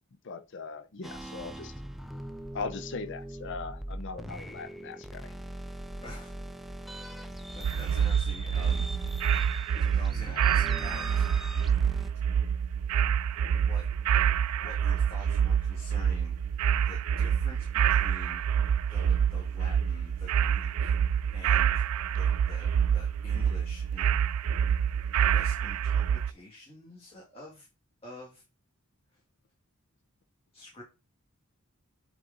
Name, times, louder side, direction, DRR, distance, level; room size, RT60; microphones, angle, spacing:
voice 1, 0.2-1.7 2.5-5.3, left 4 dB, 55° left, 0.6 m, -39 dB
sound 1, 1.0-12.1, right 1 dB, ahead, 0.4 m, -41 dB
voice 2, 6.0-6.3 6.6-6.7 7.5-8.9 9.7-11.3 13.2-13.8 14.6-16.4 16.8-18.4 18.8-20.9 21.3-21.8 22.1-24.1 24.7-24.8 25.1-27.7 28.0-28.4 30.5-30.8, left 1 dB, 25° left, 2.0 m, -47 dB
sound 2, 7.6-26.3, right 8 dB, 90° right, 0.3 m, -27 dB
7.9 x 3.7 x 3.8 m
head